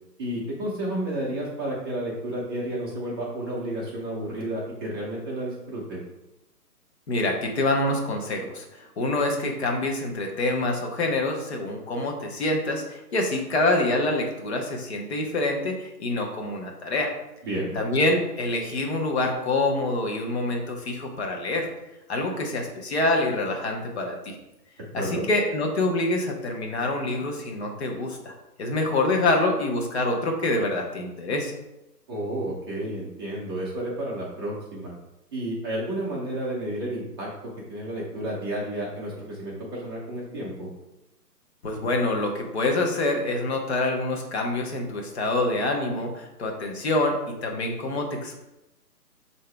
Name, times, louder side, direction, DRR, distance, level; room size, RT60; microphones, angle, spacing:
voice 1, 0.2-6.0 17.4-17.8 25.0-25.3 32.1-35.0 35.3-37.3 37.7-40.7, right 1 dB, 15° right, -6 dB, 0.7 m, -31 dB
voice 2, 7.1-17.1 17.7-21.7 22.1-24.4 24.9-28.3 28.6-31.5 41.6-47.2 47.4-48.3, left 2 dB, 40° left, 2 dB, 0.9 m, -26 dB
5.7 x 2.8 x 3.3 m, 0.95 s
hypercardioid pair, 145°, 49 cm